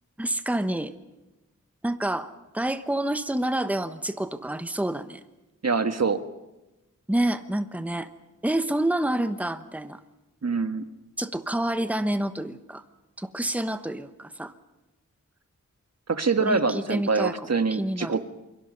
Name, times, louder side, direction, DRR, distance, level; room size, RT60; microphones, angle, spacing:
voice 1, 0.2-0.9 1.8-5.2 7.1-8.1 8.4-10.0 11.2-12.8 13.2-14.5 16.4-18.2, right 1 dB, 5° right, 10 dB, 1.1 m, -28 dB
voice 2, 5.6-6.2 10.4-10.8 16.1-18.2, right 4 dB, 55° right, 9 dB, 1.5 m, -24 dB
28.5 x 23.0 x 5.4 m, 1.0 s
wide cardioid pair, 75°, 32 cm